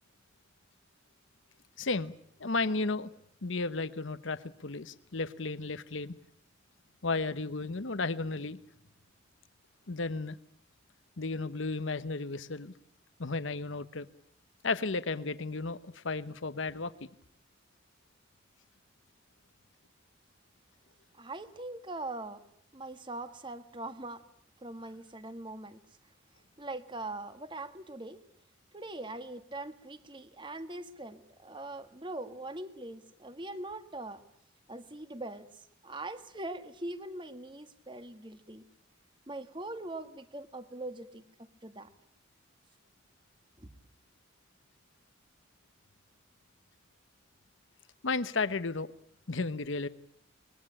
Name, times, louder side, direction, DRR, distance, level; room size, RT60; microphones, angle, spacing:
voice 1, 1.8-2.1 2.4-3.1 3.4-6.2 7.0-8.6 9.9-10.4 11.2-12.7 13.2-14.1 14.6-17.1 48.0-48.9 49.3-49.9, left 3 dB, 75° left, 13 dB, 1.0 m, -33 dB
voice 2, 21.1-22.4 22.7-24.2 24.6-25.8 26.6-28.2 28.7-34.2 34.7-35.5 35.8-38.6 39.3-41.9 43.6-43.7, right 2 dB, 25° right, 11 dB, 1.5 m, -42 dB
23.5 x 20.5 x 10.0 m, 0.68 s
head